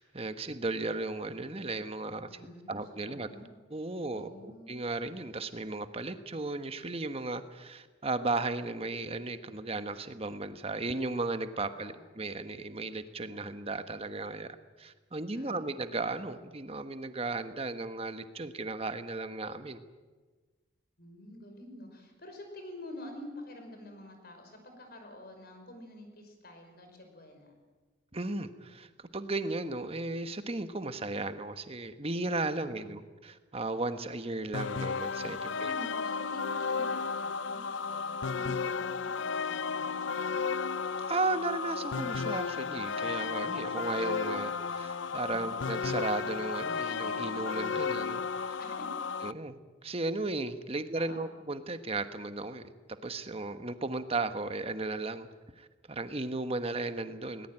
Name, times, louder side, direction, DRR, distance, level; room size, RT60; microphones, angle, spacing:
voice 1, 0.0-2.3 2.7-3.3 3.7-19.8 28.1-35.7 41.0-48.6 49.2-52.6 53.0-55.3 55.6-57.5, right 2 dB, 30° right, 10 dB, 1.2 m, -35 dB
voice 2, 2.3-2.8 3.0-3.5 4.1-4.7 11.7-12.0 15.3-15.6 21.0-27.6 32.5-33.0 35.3-40.4 45.3-45.6 48.6-48.9 50.9-51.3, left 1 dB, 50° left, 5 dB, 5.4 m, -48 dB
sound 1, 34.5-49.3, left 5 dB, 75° left, 0.6 m, -33 dB
20.5 x 19.5 x 9.0 m, 1.3 s
head